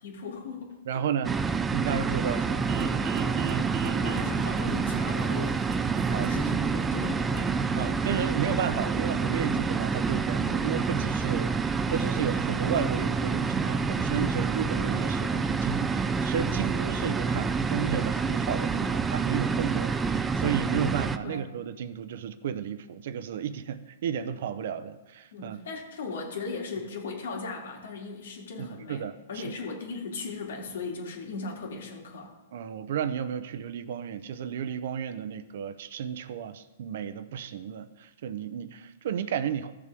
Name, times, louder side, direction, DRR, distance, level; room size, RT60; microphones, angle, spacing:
voice 1, 0.0-1.0 3.9-5.6 5.9-7.5 7.8-8.0 21.2-21.5 25.3-32.3, left 4 dB, 80° left, 0 dB, 2.6 m, -38 dB
voice 2, 0.9-2.7 6.1-6.3 7.8-25.6 28.6-29.5 32.5-39.7, right 8 dB, 60° right, 13 dB, 0.7 m, -33 dB
sound 1, 1.2-21.2, right 5 dB, 10° right, 0.4 m, -28 dB
sound 2, 2.7-7.7, right 6 dB, 30° right, 0.7 m, -36 dB
15.0 x 6.7 x 3.6 m, 1.1 s
hypercardioid pair, 155°, 0 cm